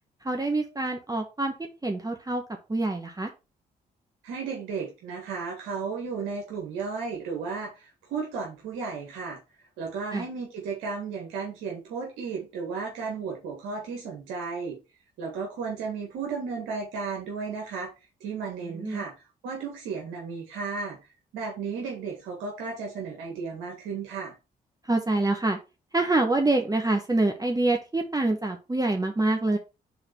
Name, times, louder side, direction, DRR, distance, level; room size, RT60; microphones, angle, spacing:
voice 1, 0.2-1.5 1.8-2.4 2.7-3.3 10.1-10.2 18.8-19.0 24.9-25.6 25.9-29.6, right 2 dB, 20° right, 4 dB, 1.3 m, -26 dB
voice 2, 4.2-9.4 9.8-14.8 15.2-17.9 18.2-19.1 19.4-21.0 21.3-24.4, right 5 dB, 85° right, -1 dB, 1.9 m, -34 dB
5.1 x 4.0 x 5.7 m, 0.28 s
supercardioid pair, 50°, 19 cm